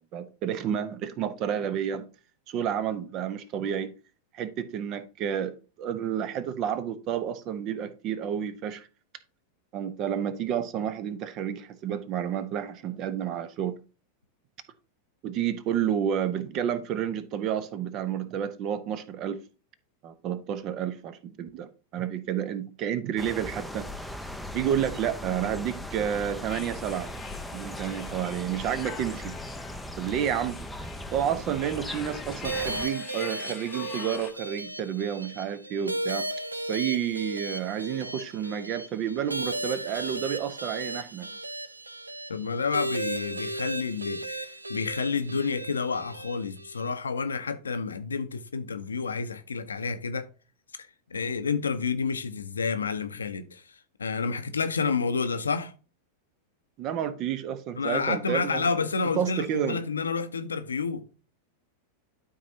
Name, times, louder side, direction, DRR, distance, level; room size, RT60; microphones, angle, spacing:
voice 1, 0.0-2.1 2.5-3.9 4.3-8.9 9.7-13.8 15.2-19.4 20.0-24.1 24.5-27.1 27.5-29.4 30.0-36.3 36.7-41.3 56.8-58.7 59.2-59.8, right 9 dB, 35° right, 0.8 m, -30 dB
sound 1, 23.2-32.9, left 1 dB, ahead, 0.6 m, -38 dB
sound 2, 26.5-34.3, left 8 dB, 25° left, 1.0 m, -44 dB
sound 3, 32.4-46.9, right 2 dB, 80° right, 0.5 m, -35 dB
voice 2, 42.3-50.3 51.1-55.7 57.8-61.0, left 5 dB, 75° left, 0.7 m, -30 dB
12.5 x 4.1 x 2.7 m
figure-of-eight pair, 90°, 0 cm